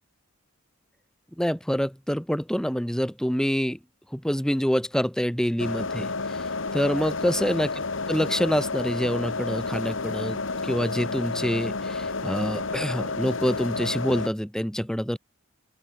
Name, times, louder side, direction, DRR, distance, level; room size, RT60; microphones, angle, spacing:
voice 1, 1.4-3.8 4.1-6.5 6.7-15.2, equal, 5° left, 0.8 m, -26 dB
sound 1, 5.6-14.3, left 3 dB, 65° left, 1.5 m, -30 dB
open air
head